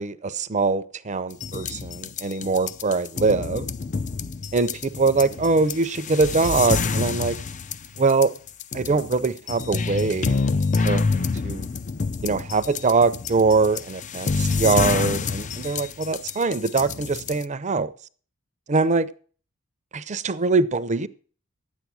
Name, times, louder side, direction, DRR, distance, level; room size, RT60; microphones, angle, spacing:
voice 1, 0.0-3.7 4.5-7.4 8.0-8.3 8.7-10.4 10.8-11.7 12.2-17.9 18.7-19.1 19.9-21.1, right 4 dB, 35° right, 0.6 m, -23 dB
sound 1, 1.3-17.4, left 4 dB, 35° left, 0.5 m, -27 dB
10.5 x 8.3 x 6.2 m
head